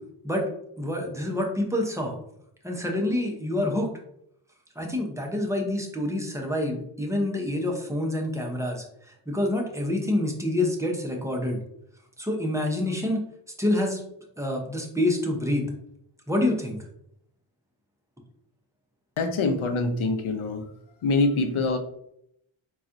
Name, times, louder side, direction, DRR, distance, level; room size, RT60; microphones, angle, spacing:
voice 1, 0.8-2.1 2.6-3.9 4.8-11.6 12.2-13.2 13.6-14.0 14.4-15.7 16.3-16.8, left 1 dB, 5° right, 0 dB, 0.6 m, -27 dB
voice 2, 19.2-20.6 21.0-21.8, left 3 dB, 80° left, 5 dB, 0.6 m, -24 dB
4.0 x 2.3 x 2.5 m, 0.75 s
wide cardioid pair, 80°, 49 cm